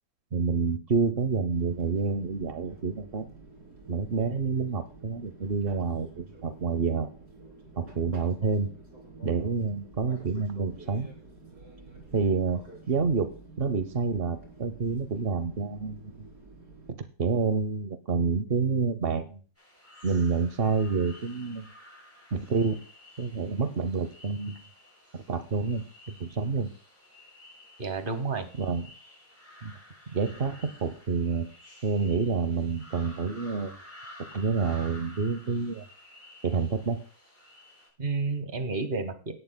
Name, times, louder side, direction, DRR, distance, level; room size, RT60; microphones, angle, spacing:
voice 1, 0.3-3.3 3.9-7.1 7.8-8.7 9.2-11.1 12.1-12.6 12.9-16.3 16.9-19.4 20.0-21.7 22.3-22.8 23.2-24.6 25.1-26.7 28.6-28.9 29.6-29.7 30.1-31.5 31.8-33.8 34.3-35.8 36.4-37.0, right 5 dB, 70° right, 10 dB, 0.5 m, -28 dB
Fixed-wing aircraft airplane, 1.5-16.9, right 2 dB, 50° right, 3.6 m, -50 dB
sound 1, 19.6-37.9, left 1 dB, 5° left, 7.0 m, -52 dB
voice 2, 27.8-28.5 38.0-39.3, right 4 dB, 35° right, 9 dB, 1.0 m, -30 dB
17.0 x 11.0 x 2.2 m, 0.39 s
omnidirectional pair, 2.1 m